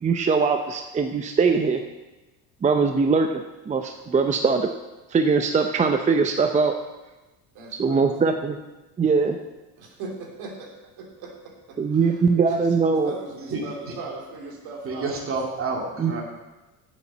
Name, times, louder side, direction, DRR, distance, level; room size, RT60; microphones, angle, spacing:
voice 1, 0.0-1.8 2.6-4.7 5.1-6.8 7.8-8.6 9.0-9.4 11.8-13.1 16.0-16.1, right 4 dB, 20° right, 5 dB, 0.6 m, -21 dB
voice 2, 7.5-8.1 9.8-10.7 11.0-11.3 11.7-11.8 12.6-12.7 13.0-15.1, right 3 dB, 70° right, -1 dB, 3.3 m, -38 dB
voice 3, 13.5-14.3 14.8-16.2, right 3 dB, 35° right, 0 dB, 2.4 m, -30 dB
8.7 x 7.0 x 7.4 m, 1.1 s
cardioid pair, 125°, 39 cm